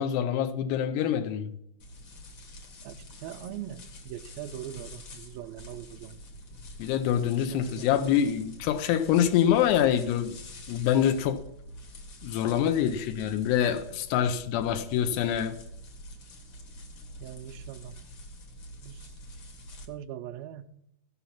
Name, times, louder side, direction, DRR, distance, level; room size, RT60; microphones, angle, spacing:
voice 1, 0.0-1.5 6.8-10.4 10.7-11.4 12.2-15.6, left 9 dB, 90° left, 2.9 m, -25 dB
sound 1, 1.8-19.8, left 1 dB, 55° left, 1.3 m, -46 dB
voice 2, 3.2-6.2 7.5-8.2 17.2-18.0 18.8-19.1 19.9-20.7, right 11 dB, 80° right, 2.2 m, -41 dB
16.0 x 5.8 x 5.8 m
omnidirectional pair, 4.7 m